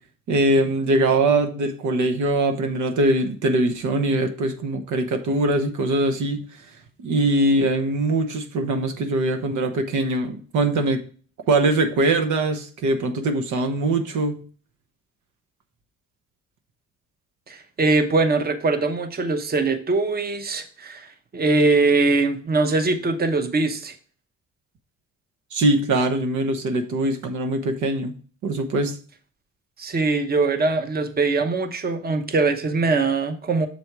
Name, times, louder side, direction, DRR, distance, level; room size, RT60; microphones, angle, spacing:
voice 1, 0.3-6.4 7.0-11.0 11.5-14.4 25.5-28.2 28.4-29.0, right 2 dB, 75° right, 1.0 m, -22 dB
voice 2, 17.5-23.9 29.8-33.7, right 3 dB, 30° right, 0.9 m, -22 dB
6.8 x 4.3 x 4.6 m
cardioid pair, 90°, 30 cm